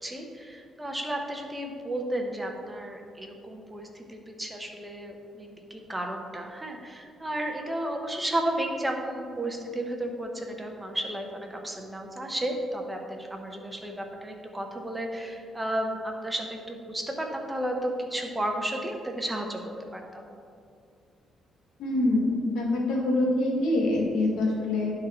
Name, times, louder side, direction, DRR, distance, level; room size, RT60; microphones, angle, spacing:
voice 1, 0.0-20.3, right 1 dB, 15° right, 2 dB, 1.0 m, -33 dB
voice 2, 21.8-24.9, left 2 dB, 80° left, -1 dB, 1.7 m, -25 dB
11.0 x 3.9 x 4.3 m, 2.5 s
cardioid pair, 90°, 0 cm